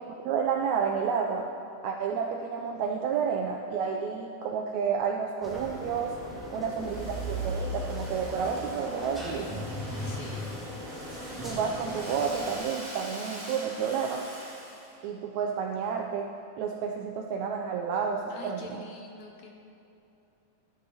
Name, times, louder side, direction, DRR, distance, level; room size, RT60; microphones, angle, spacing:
voice 1, 0.2-1.5 1.8-6.2 6.5-9.7 11.4-14.3 15.0-18.8, right 6 dB, 85° right, 2 dB, 1.6 m, -30 dB
sound 1, 5.4-12.5, equal, ahead, 1.1 m, -37 dB
voice 2, 6.5-7.1 10.0-10.6 18.3-19.5, left 2 dB, 75° left, 2 dB, 1.8 m, -46 dB
Domestic sounds home sounds, 6.7-14.9, right 1 dB, 20° right, 2.1 m, -44 dB
12.0 x 11.5 x 2.8 m, 2.7 s
omnidirectional pair, 3.7 m